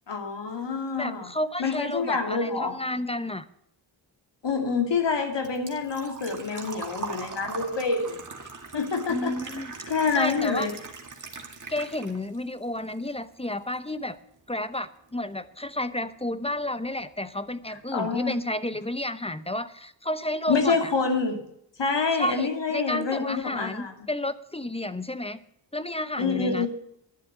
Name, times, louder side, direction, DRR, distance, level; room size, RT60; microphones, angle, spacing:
voice 1, 0.1-1.3 1.6-2.8 4.4-8.2 8.7-9.4 9.9-10.7 17.9-18.3 20.5-21.4 21.8-24.1 26.2-26.7, left 4 dB, 65° left, 4 dB, 2.6 m, -27 dB
voice 2, 1.0-3.5 9.1-9.7 10.1-10.7 11.7-14.2 14.5-20.9 22.1-25.4 25.7-26.7, left 1 dB, 15° left, 13 dB, 0.9 m, -31 dB
Engine / Trickle dribble / Fill (with liquid), 4.5-12.4 12.8-13.7 14.0-14.1 16.0-16.1 16.3-16.7 17.0-17.1 17.4-17.5, right 4 dB, 40° right, 2.2 m, -41 dB
11.5 x 7.2 x 9.3 m, 0.73 s
cardioid pair, 55°, 46 cm